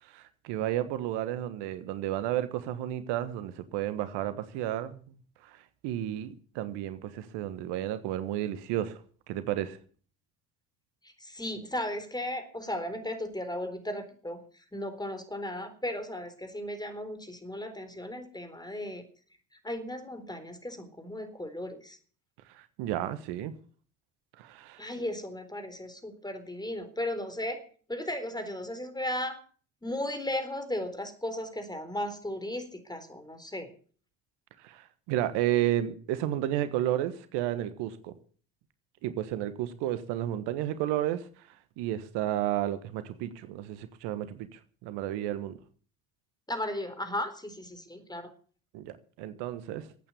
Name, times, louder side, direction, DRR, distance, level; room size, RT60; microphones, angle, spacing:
voice 1, 0.0-5.0 5.4-9.0 9.3-9.8 22.5-23.5 24.4-24.8 34.6-38.2 39.0-41.5 41.8-45.6 48.7-49.9, right 12 dB, 70° right, 1.4 m, -32 dB
voice 2, 11.2-14.4 14.7-19.1 19.6-22.0 24.8-27.6 27.9-29.4 29.8-33.7 46.5-48.3, left 1 dB, 10° left, 4.0 m, -36 dB
14.0 x 8.9 x 8.5 m
hypercardioid pair, 55°, 43 cm